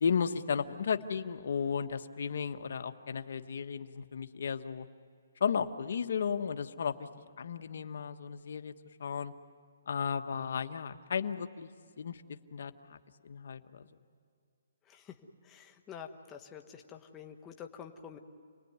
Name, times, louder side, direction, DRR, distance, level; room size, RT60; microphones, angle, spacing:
voice 1, 0.0-4.9 5.4-7.1 7.4-8.7 9.0-9.3 9.9-11.7 12.0-12.2 12.5-13.0 13.2-13.8, left 6 dB, 65° left, 8 dB, 1.3 m, -34 dB
voice 2, 14.8-15.2 15.4-18.2, left 7 dB, 15° left, 4 dB, 1.5 m, -48 dB
29.0 x 20.0 x 9.6 m, 2.3 s
hypercardioid pair, 160°, 0 cm